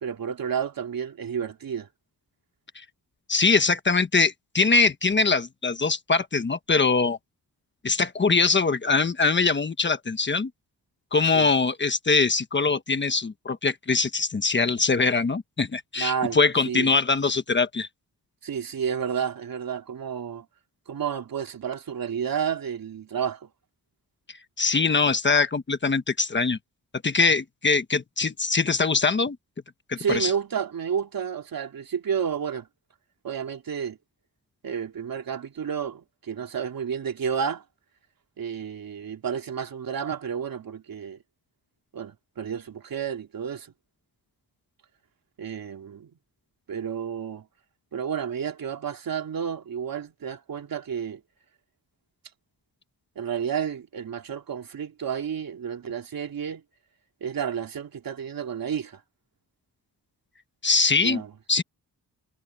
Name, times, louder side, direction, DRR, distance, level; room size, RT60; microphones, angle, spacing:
voice 1, 0.0-1.9 11.3-11.5 16.0-16.4 16.7-16.9 18.4-20.5 20.9-23.5 30.0-32.7 33.2-34.0 34.6-37.6 38.4-41.2 41.9-43.7 45.4-46.1 46.7-47.5 47.9-51.2 53.2-56.6 57.2-59.0 61.0-61.3, right 7 dB, 70° right, 3.7 m, -31 dB
voice 2, 3.3-7.2 7.8-10.5 11.1-17.9 24.6-26.6 27.0-29.4 29.9-30.3 60.6-61.2 61.5-61.6, left 4 dB, 30° left, 1.2 m, -22 dB
wide cardioid pair, 160°, 36 cm